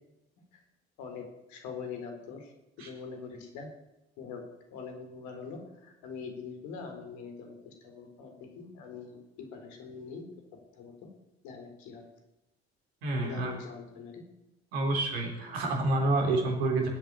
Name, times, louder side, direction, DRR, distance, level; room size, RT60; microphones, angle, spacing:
voice 1, 1.0-2.5 2.8-3.7 4.2-4.4 4.7-10.2 10.8-10.9 11.4-12.1 13.2-14.2, left 5 dB, 65° left, 4 dB, 4.0 m, -43 dB
voice 2, 13.0-13.5 14.7-16.9, right 2 dB, 75° right, 1 dB, 3.7 m, -28 dB
19.5 x 8.8 x 8.3 m, 0.95 s
figure-of-eight pair, 45°, 31 cm